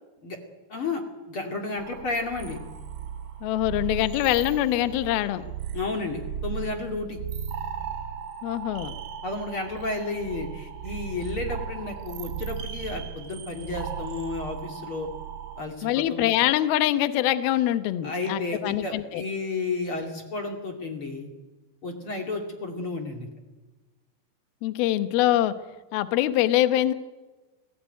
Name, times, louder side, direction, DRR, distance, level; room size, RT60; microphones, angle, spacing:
voice 1, 0.7-2.6 5.7-7.2 9.2-15.1 15.6-16.2 18.0-21.3 21.8-23.3, left 3 dB, 35° left, 3 dB, 2.6 m, -32 dB
sound 1, 1.8-15.6, right 7 dB, 60° right, 3.6 m, -36 dB
voice 2, 3.4-5.4 8.4-9.0 15.8-19.2 24.6-25.5 25.9-26.9, left 13 dB, 70° left, 11 dB, 2.6 m, -24 dB
28.5 x 19.0 x 9.3 m, 1.2 s
omnidirectional pair, 5.3 m